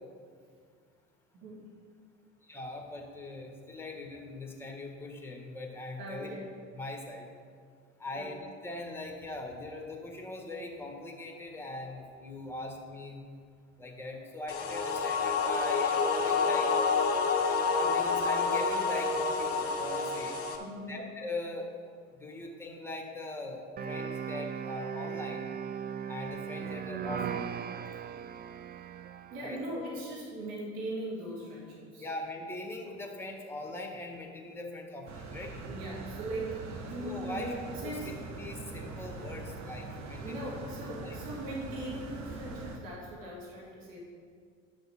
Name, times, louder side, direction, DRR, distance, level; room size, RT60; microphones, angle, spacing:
voice 1, 2.4-6.3 6.7-7.3 8.0-13.2 13.8-16.7 17.7-20.4 20.9-21.7 22.2-23.6 23.9-25.5 26.1-27.5 29.4-29.6 32.0-35.5 37.0-37.5 37.8-40.5 41.0-41.2, left 2 dB, 5° left, 1 dB, 2.0 m, -41 dB
voice 2, 6.0-6.4 8.1-8.3 20.6-21.1 29.3-32.1 35.5-38.1 40.2-44.0, right 1 dB, 65° right, -4 dB, 2.4 m, -39 dB
sound 1, 14.5-20.6, left 4 dB, 40° left, 1.5 m, -28 dB
sound 2, 23.8-29.7, right 7 dB, 25° right, 0.4 m, -38 dB
sound 3, 35.1-42.8, right 3 dB, 50° right, 1.3 m, -42 dB
11.0 x 6.5 x 4.5 m, 2.1 s
hypercardioid pair, 65°, 37 cm